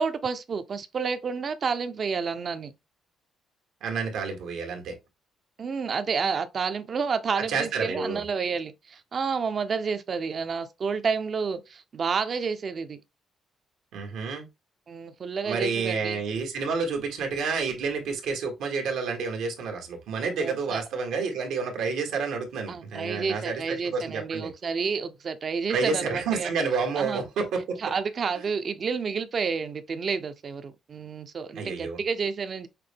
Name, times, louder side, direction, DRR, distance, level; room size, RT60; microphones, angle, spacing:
voice 1, 0.0-2.7 5.6-13.0 14.9-16.2 20.2-20.8 22.7-26.5 27.0-27.2 27.8-32.7, right 5 dB, 45° right, 0.6 m, -30 dB
voice 2, 3.8-4.9 7.5-8.2 13.9-14.5 15.4-24.5 25.7-27.8 31.5-32.0, right 5 dB, 85° right, 1.4 m, -29 dB
5.8 x 2.1 x 3.4 m
cardioid pair, 90°, 0 cm